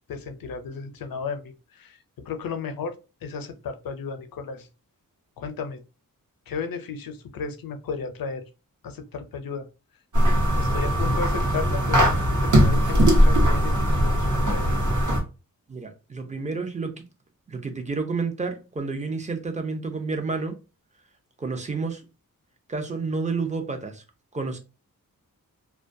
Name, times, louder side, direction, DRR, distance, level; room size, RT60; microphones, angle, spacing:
voice 1, 0.1-1.4 2.3-2.9 3.2-4.6 5.4-5.8 6.5-8.4 8.8-9.7 10.6-12.1 12.4-14.8, left 5 dB, 75° left, 0.5 m, -34 dB
sound 1, 10.1-15.2, equal, 55° right, 0.9 m, -20 dB
voice 2, 15.7-17.0 17.5-20.6 21.4-22.0 22.7-24.0 24.3-24.6, right 4 dB, 20° right, 0.4 m, -30 dB
2.2 x 2.2 x 2.5 m
wide cardioid pair, 115°, 35 cm